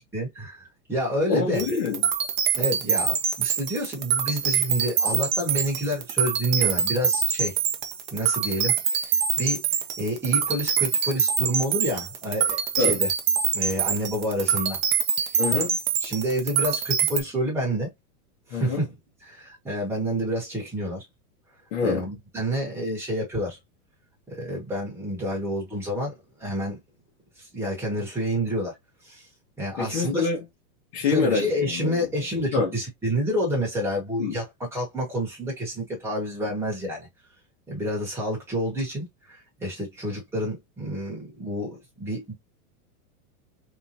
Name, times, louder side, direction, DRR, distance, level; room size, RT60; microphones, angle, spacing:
voice 1, 0.1-1.6 2.6-7.6 8.1-9.6 10.0-13.1 13.5-14.8 15.2-15.3 16.0-17.9 18.5-18.8 19.2-21.0 21.8-23.6 24.3-26.1 26.4-26.8 27.4-28.7 29.0-29.3 29.6-30.3 31.0-37.1 37.7-42.3, equal, 5° right, 1.2 m, -29 dB
voice 2, 1.3-2.0 12.8-13.0 15.4-15.8 18.5-18.8 21.7-22.1 29.8-30.4 30.9-32.1 32.5-32.7 34.2-34.4, left 4 dB, 40° left, 1.3 m, -26 dB
sound 1, 1.6-17.2, right 7 dB, 35° right, 0.5 m, -25 dB
3.8 x 3.0 x 2.7 m
supercardioid pair, 175°, 44 cm